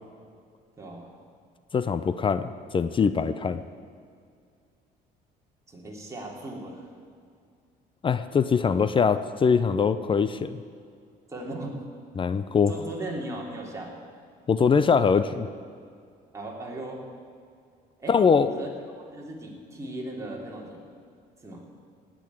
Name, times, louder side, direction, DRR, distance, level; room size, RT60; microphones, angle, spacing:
voice 1, 0.8-1.1 5.7-6.9 11.3-11.7 12.7-14.0 16.3-17.0 18.0-18.1 18.6-18.7 18.9-20.8 21.4-21.6, right 1 dB, 15° right, -2 dB, 3.1 m, -37 dB
voice 2, 1.7-3.6 8.0-10.6 12.2-12.7 14.5-15.5 18.1-18.6, left 6 dB, 30° left, 13 dB, 0.6 m, -22 dB
18.0 x 6.3 x 9.2 m, 2.3 s
cardioid pair, 110°, 17 cm